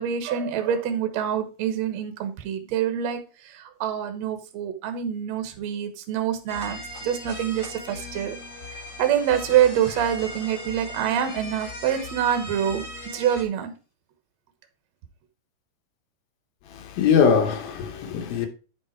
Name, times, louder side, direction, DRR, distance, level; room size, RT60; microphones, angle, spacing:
voice 1, 0.0-8.4 8.7-12.9 13.1-13.7, right 9 dB, 60° right, 2.0 m, -26 dB
sound 1, 6.5-13.4, left 1 dB, 40° left, 1.2 m, -38 dB
voice 2, 16.7-18.5, left 6 dB, 80° left, 2.9 m, -22 dB
9.6 x 5.4 x 4.4 m
omnidirectional pair, 4.3 m